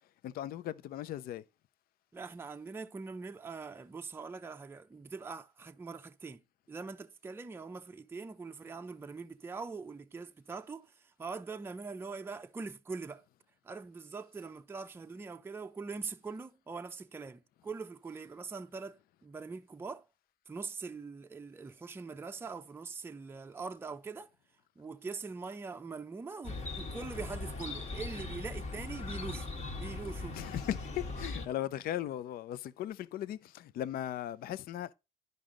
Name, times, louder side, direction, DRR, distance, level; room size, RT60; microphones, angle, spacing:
voice 1, 0.2-1.4 30.3-34.9, left 12 dB, 60° left, 0.5 m, -38 dB
voice 2, 2.1-6.4 6.7-13.2 13.6-20.0 20.5-24.3 24.8-29.5 29.8-30.4, right 4 dB, 15° right, 0.5 m, -43 dB
Chirp tweet, 26.4-31.5, left 2 dB, 45° left, 1.5 m, -40 dB
10.5 x 5.2 x 3.7 m
cardioid pair, 110°, 17 cm